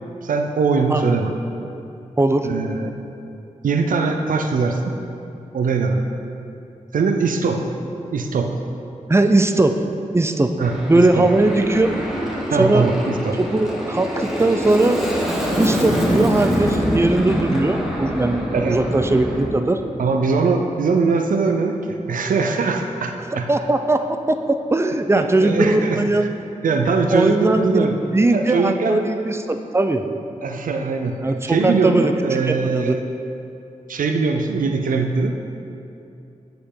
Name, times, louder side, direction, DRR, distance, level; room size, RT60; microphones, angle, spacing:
voice 1, 0.2-1.4 2.4-2.9 3.6-4.9 5.5-6.1 6.9-7.7 8.1-8.6 10.6-11.3 12.5-13.4 18.5-18.8 20.0-23.5 25.1-26.0 26.6-28.0 28.3-29.0 30.4-33.0 33.9-35.3, right 4 dB, 80° right, 4 dB, 0.5 m, -21 dB
voice 2, 2.2-2.5 9.1-9.8 10.1-10.5 10.9-11.9 12.5-12.9 13.4-15.0 15.6-19.8 23.3-26.3 27.1-30.1 31.2-32.1 32.4-33.0, right 2 dB, 20° right, 7 dB, 0.5 m, -19 dB
Aircraft, 10.6-19.4, equal, ahead, 1.4 m, -24 dB
7.9 x 6.8 x 3.8 m, 2.7 s
cardioid pair, 55°, 14 cm